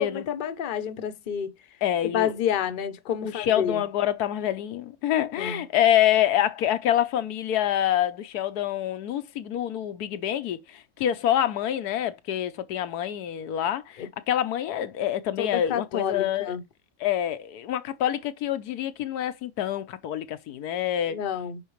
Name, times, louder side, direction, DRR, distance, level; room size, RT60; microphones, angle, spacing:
voice 1, 0.0-1.5 2.0-3.8 5.4-5.6 14.0-14.1 15.4-16.6 21.1-21.6, left 8 dB, 40° left, 0.8 m, -29 dB
voice 2, 1.8-2.3 3.2-16.5 17.0-21.2, left 11 dB, 85° left, 1.3 m, -26 dB
9.2 x 4.4 x 3.1 m
omnidirectional pair, 1.6 m